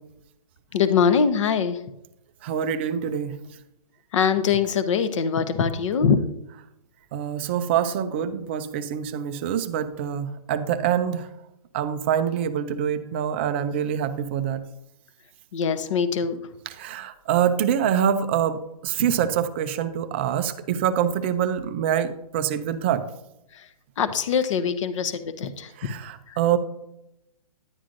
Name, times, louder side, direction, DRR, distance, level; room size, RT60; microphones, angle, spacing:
voice 1, 0.7-1.8 4.1-6.2 15.5-16.4 19.0-19.1 23.5-23.7 24.0-25.9 26.3-26.4, left 6 dB, 50° left, 11 dB, 0.8 m, -23 dB
voice 2, 2.4-3.4 7.1-11.3 11.7-14.6 16.7-23.0 25.8-26.6, right 9 dB, 20° right, 10 dB, 0.3 m, -25 dB
10.5 x 9.2 x 2.5 m, 0.83 s
hypercardioid pair, 155°, 20 cm